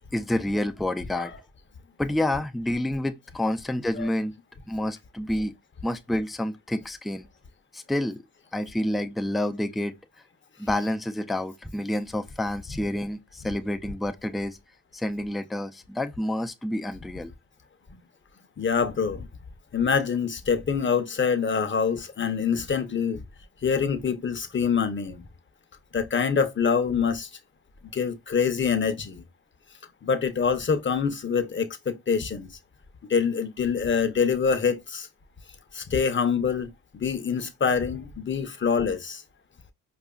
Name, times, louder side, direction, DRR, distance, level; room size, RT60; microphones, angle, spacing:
voice 1, 0.1-1.3 2.0-4.3 4.7-5.5 5.8-7.3 7.7-8.2 8.5-9.9 10.6-14.6 14.9-17.3, left 1 dB, ahead, 0.3 m, -28 dB
voice 2, 18.6-19.3 19.7-23.2 23.6-25.2 25.9-27.3 27.9-29.2 30.0-32.5 33.1-35.1 35.7-39.2, left 6 dB, 30° left, 0.7 m, -25 dB
4.7 x 2.4 x 2.3 m
supercardioid pair, 55°, 38 cm